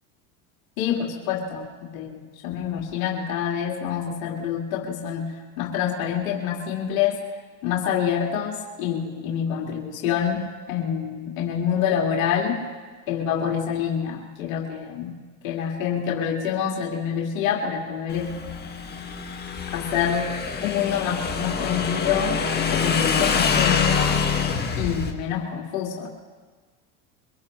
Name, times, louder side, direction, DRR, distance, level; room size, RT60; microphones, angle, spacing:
voice 1, 0.8-5.3 5.6-7.2 7.6-12.6 13.1-15.1 15.4-18.3 19.7-20.3 20.6-22.4 22.8-24.2 24.8-26.1, left 8 dB, 80° left, -1 dB, 2.4 m, -26 dB
Motorcycle / Engine, 18.1-25.1, left 5 dB, 25° left, 1.9 m, -25 dB
24.0 x 18.0 x 3.2 m, 1.4 s
hypercardioid pair, 95°, 40 cm